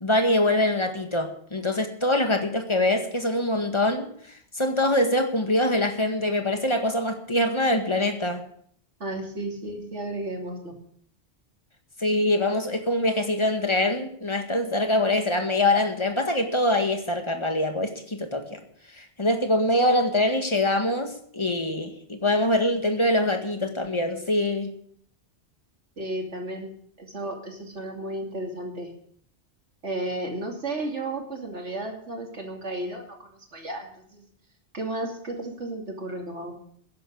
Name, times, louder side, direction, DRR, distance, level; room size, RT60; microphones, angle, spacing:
voice 1, 0.0-8.4 12.0-18.6 18.9-24.7, left 1 dB, 25° left, 5 dB, 1.8 m, -24 dB
voice 2, 9.0-10.7 26.0-26.7 27.0-28.9 29.8-34.3 34.7-36.5, right 1 dB, 85° right, 2 dB, 3.1 m, -33 dB
14.5 x 11.0 x 6.5 m, 0.64 s
omnidirectional pair, 1.2 m